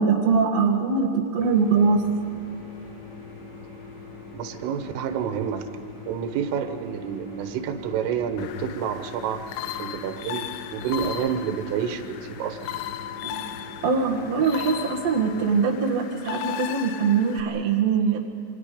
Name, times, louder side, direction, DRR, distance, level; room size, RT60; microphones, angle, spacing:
voice 1, 0.0-2.0 13.2-13.6 13.8-18.2, right 5 dB, 55° right, -3 dB, 1.9 m, -22 dB
sound 1, 1.4-15.4, left 3 dB, 60° left, 7.6 m, -43 dB
voice 2, 4.3-5.6 6.1-9.4 9.8-10.5 10.7-12.6, right 8 dB, 80° right, 7 dB, 3.7 m, -29 dB
sound 2, 8.4-17.4, left 12 dB, 80° left, 3.3 m, -36 dB
28.5 x 25.5 x 5.1 m, 2.8 s
omnidirectional pair, 5.8 m